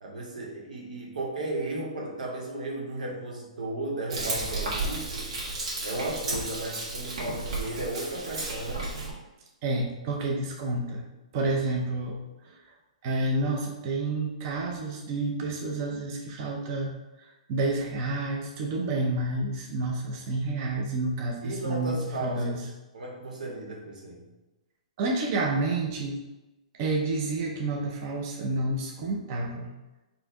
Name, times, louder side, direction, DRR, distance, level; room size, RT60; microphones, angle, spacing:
voice 1, 0.0-5.3 5.8-8.9 21.4-22.7 22.9-24.3, right 2 dB, 90° right, -2 dB, 1.6 m, -35 dB
Frying (food), 4.1-9.1, right 2 dB, 55° right, 1.5 m, -33 dB
voice 2, 9.6-11.1 11.3-12.2 13.0-16.9 17.2-22.6 25.0-26.2 26.8-29.7, right 2 dB, 25° right, 0 dB, 0.4 m, -29 dB
4.4 x 2.6 x 4.5 m, 1.0 s
hypercardioid pair, 175°, 4 cm